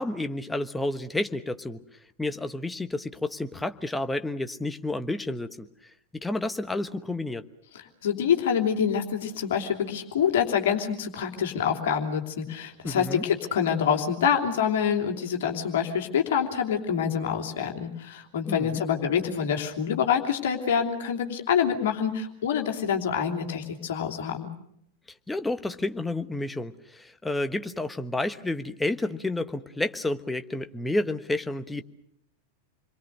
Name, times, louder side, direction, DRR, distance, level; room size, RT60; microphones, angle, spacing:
voice 1, 0.0-1.8 2.2-5.7 6.1-7.4 12.8-13.2 18.5-18.8 25.3-31.8, left 2 dB, 5° left, 9 dB, 1.2 m, -30 dB
voice 2, 8.0-24.5, left 7 dB, 55° left, 3 dB, 3.1 m, -26 dB
28.5 x 22.5 x 6.6 m, 0.73 s
figure-of-eight pair, 90°, 0 cm